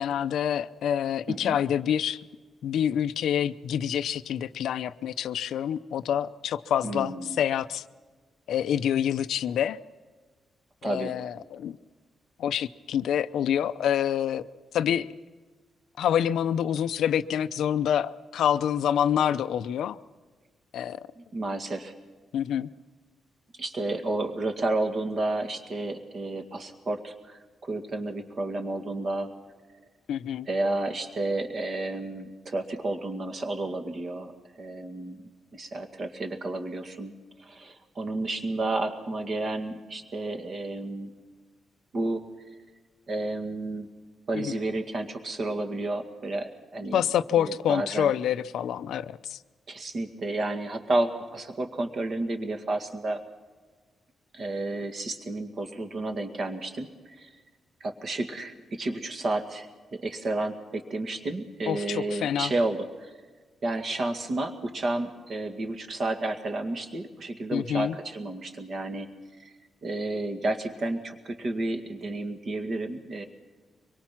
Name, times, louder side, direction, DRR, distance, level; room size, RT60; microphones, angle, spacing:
voice 1, 0.0-2.2 2.6-7.8 8.5-9.8 10.8-11.8 12.4-14.4 14.7-15.1 16.0-20.0 20.7-21.1 22.3-22.7 30.1-30.5 44.3-44.5 46.9-49.4 61.7-62.5 67.5-68.0, left 9 dB, 85° left, 12 dB, 0.7 m, -27 dB
voice 2, 1.3-1.6 6.8-7.4 10.8-11.1 21.2-21.9 23.6-29.3 30.5-34.3 34.6-35.2 35.5-37.1 37.4-41.1 41.9-42.2 43.1-43.9 44.3-47.0 47.4-48.1 49.7-53.2 54.3-57.3 57.8-63.1 63.6-69.1 69.4-69.5 69.8-73.2, right 2 dB, 40° right, 6 dB, 2.0 m, -31 dB
24.5 x 22.5 x 6.0 m, 1.4 s
wide cardioid pair, 165°, 0 cm